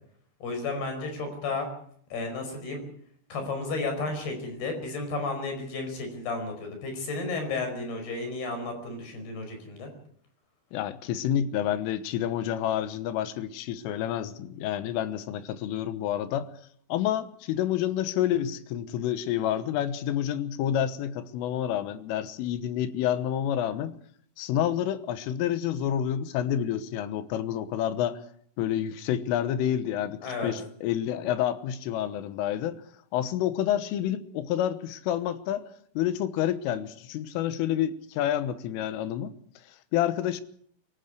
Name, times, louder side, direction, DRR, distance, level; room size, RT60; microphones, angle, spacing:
voice 1, 0.4-1.7 2.1-2.8 3.3-9.9 30.2-30.5, left 3 dB, 55° left, 5 dB, 6.9 m, -32 dB
voice 2, 10.7-16.5 16.9-24.0 24.4-28.2 28.6-32.8 33.1-35.6 36.0-39.3 39.9-40.4, left 10 dB, 85° left, 12 dB, 3.7 m, -28 dB
24.0 x 15.5 x 8.1 m, 0.63 s
omnidirectional pair, 5.7 m